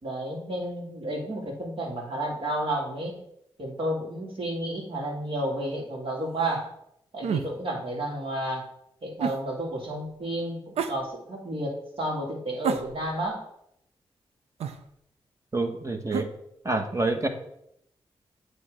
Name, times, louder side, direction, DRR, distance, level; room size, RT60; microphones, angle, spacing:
voice 1, 0.0-3.1 3.6-6.7 7.1-8.6 9.0-13.4, right 1 dB, 60° right, -1 dB, 2.3 m, -31 dB
sound 1, 7.2-7.5 9.2-9.4 10.8-11.0 12.6-13.3 14.6-14.8 16.1-16.3, right 6 dB, 80° right, 0.5 m, -29 dB
voice 2, 15.5-16.3 16.6-17.3, right 2 dB, 30° right, 6 dB, 1.2 m, -27 dB
8.5 x 3.3 x 5.0 m, 0.76 s
supercardioid pair, 45°, 11 cm